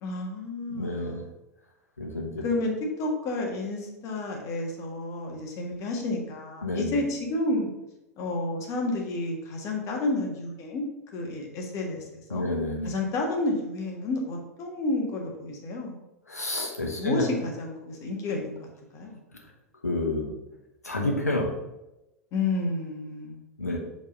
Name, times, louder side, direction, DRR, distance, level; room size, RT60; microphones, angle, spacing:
voice 1, 0.0-1.3 2.4-7.7 8.2-10.8 11.1-12.4 12.8-16.0 16.8-19.2 22.3-23.4, left 2 dB, 40° left, 1 dB, 1.5 m, -30 dB
voice 2, 0.7-1.3 2.0-2.5 6.6-6.9 12.3-12.9 16.3-17.3 19.8-20.3 20.8-21.5 23.6-23.8, left 2 dB, 90° left, 1 dB, 1.2 m, -29 dB
5.3 x 3.6 x 5.3 m, 0.95 s
figure-of-eight pair, 85°, 8 cm